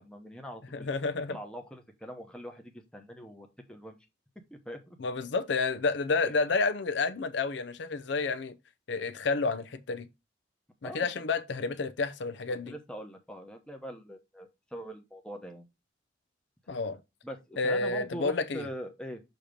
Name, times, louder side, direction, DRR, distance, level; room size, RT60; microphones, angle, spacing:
voice 1, 0.0-1.0 1.3-4.0 4.5-5.0 6.3-6.4 10.8-11.1 12.7-15.7 17.2-19.2, equal, 5° left, 0.8 m, -42 dB
voice 2, 0.7-1.4 5.0-8.5 8.9-10.1 10.8-12.7 16.7-17.0 17.6-18.7, left 4 dB, 75° left, 0.5 m, -30 dB
6.5 x 2.9 x 5.0 m
head